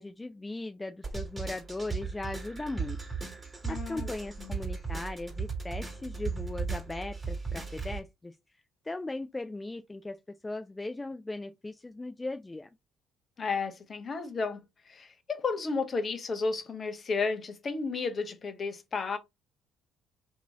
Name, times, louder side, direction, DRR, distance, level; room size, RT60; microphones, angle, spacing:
voice 1, 0.0-3.0 3.7-8.3 8.8-12.7, left 2 dB, 20° left, 0.3 m, -38 dB
sound 1, 1.0-8.0, right 5 dB, 20° right, 1.8 m, -36 dB
voice 2, 3.6-4.5 13.4-19.2, left 4 dB, 40° left, 0.8 m, -33 dB
3.0 x 2.7 x 3.5 m
hypercardioid pair, 60°, 0 cm